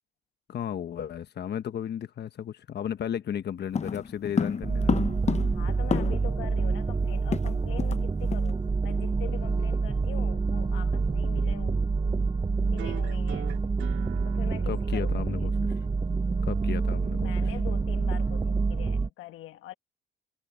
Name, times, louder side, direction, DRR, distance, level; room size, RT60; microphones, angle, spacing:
voice 1, 0.5-5.1 14.7-15.8 16.4-17.5, left 9 dB, 55° left, 1.2 m, -34 dB
sound 1, 3.7-6.4 6.7-6.8 7.0-8.0 8.3-8.5 8.9-9.1, left 5 dB, 35° left, 1.0 m, -30 dB
sound 2, 4.6-19.1, right 4 dB, 20° right, 0.7 m, -27 dB
voice 2, 5.5-11.8 12.7-13.6 14.2-15.6 17.2-19.7, left 14 dB, 90° left, 1.5 m, -44 dB
sound 3, 12.8-17.8, right 12 dB, 75° right, 2.3 m, -45 dB
cardioid pair, 90°, 20 cm